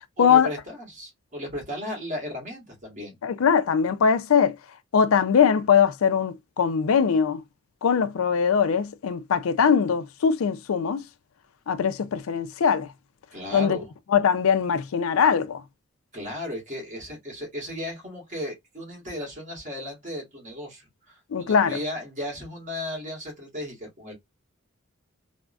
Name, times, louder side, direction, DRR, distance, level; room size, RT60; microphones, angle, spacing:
voice 1, 0.2-3.2 13.3-13.9 16.1-24.1, left 1 dB, 35° right, 1.5 m, -35 dB
voice 2, 3.2-4.5 4.9-7.4 7.8-11.0 11.7-12.9 13.5-13.8 14.1-15.6 21.3-21.8, left 7 dB, 85° left, 0.4 m, -21 dB
3.4 x 2.1 x 2.3 m
head